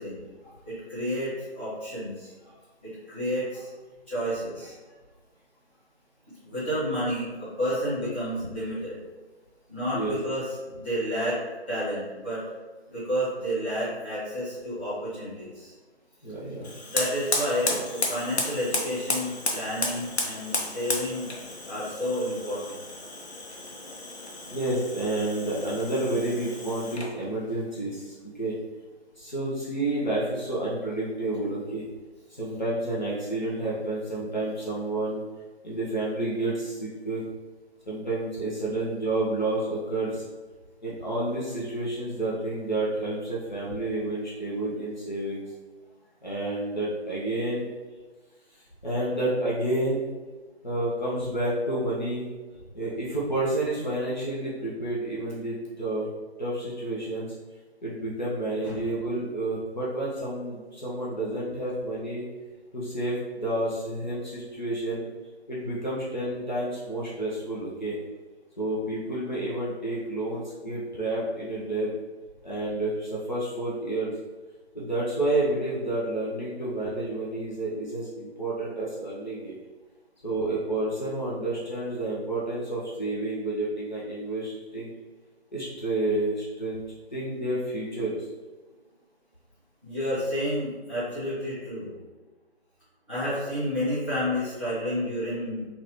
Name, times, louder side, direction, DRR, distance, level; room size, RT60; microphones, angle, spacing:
voice 1, 0.0-2.5 2.8-3.7 4.1-4.7 6.4-9.0 9.7-11.4 11.7-12.4 12.9-15.7 16.9-21.3 21.7-22.8 58.4-58.8 89.8-91.9 93.1-95.7, equal, 10° left, -18 dB, 1.1 m, -30 dB
voice 2, 16.2-16.7 24.5-28.6 29.2-31.9 32.3-35.2 35.6-37.2 37.9-40.2 40.8-45.4 46.2-47.7 48.5-50.0 50.6-52.3 52.7-56.1 56.4-57.3 57.8-62.2 62.7-65.1 65.5-68.0 68.6-71.9 72.4-74.1 74.7-79.5 80.2-84.9 85.5-86.8 87.1-88.2, right 2 dB, 45° left, -7 dB, 0.8 m, -30 dB
Fire, 16.6-27.2, left 2 dB, 75° left, 0.8 m, -33 dB
4.2 x 2.5 x 3.0 m, 1.3 s
figure-of-eight pair, 160°, 33 cm